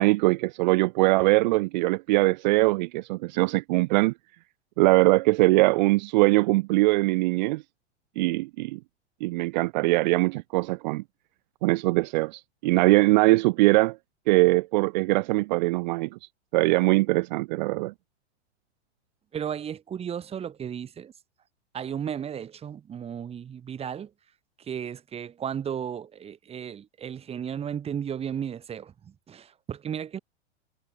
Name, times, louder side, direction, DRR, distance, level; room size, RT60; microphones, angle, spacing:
voice 1, 0.0-4.1 4.8-7.6 8.2-8.8 9.2-11.0 11.6-14.0 14.3-16.2 16.5-17.9, right 22 dB, 40° right, 0.8 m, -22 dB
voice 2, 19.3-21.1 21.7-24.1 24.7-30.2, right 8 dB, 15° right, 1.7 m, -34 dB
figure-of-eight pair, 95°, 34 cm